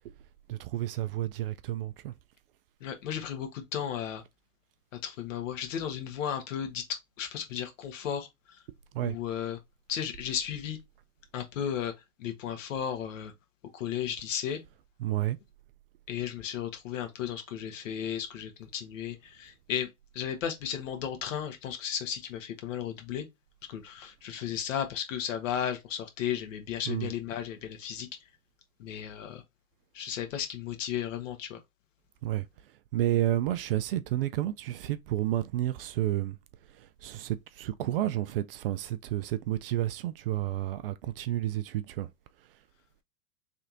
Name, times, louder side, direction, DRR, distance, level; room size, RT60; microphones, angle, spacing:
voice 1, 0.5-2.1 8.9-9.2 15.0-15.4 26.8-27.1 32.2-32.5 32.9-36.4 36.7-42.1, right 13 dB, 45° right, 0.4 m, -31 dB
voice 2, 2.8-4.2 5.0-8.6 9.0-9.6 9.9-10.8 11.3-11.9 12.2-13.3 13.7-14.6 16.1-19.9 20.1-23.2 23.7-28.1 28.8-29.4 29.9-31.6, left 9 dB, 60° left, 1.3 m, -34 dB
3.4 x 2.9 x 3.7 m
hypercardioid pair, 110°, 43 cm